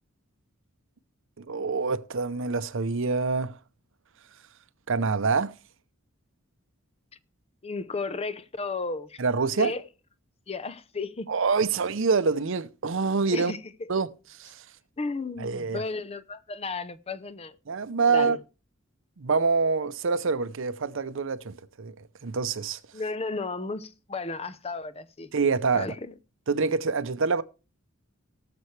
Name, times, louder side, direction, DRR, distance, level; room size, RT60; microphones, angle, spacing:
voice 1, 1.4-3.6 4.9-5.5 9.2-9.7 11.3-13.5 13.9-14.1 14.4-14.6 15.4-15.8 17.7-18.4 19.2-22.8 25.3-25.9 26.5-27.4, right 4 dB, 65° right, 0.6 m, -26 dB
voice 2, 7.6-9.2 9.6-9.8 10.5-11.3 13.3-13.6 15.0-17.6 18.1-18.4 22.9-25.3 25.7-26.0, left 3 dB, 30° left, 0.6 m, -33 dB
18.5 x 6.9 x 3.2 m
head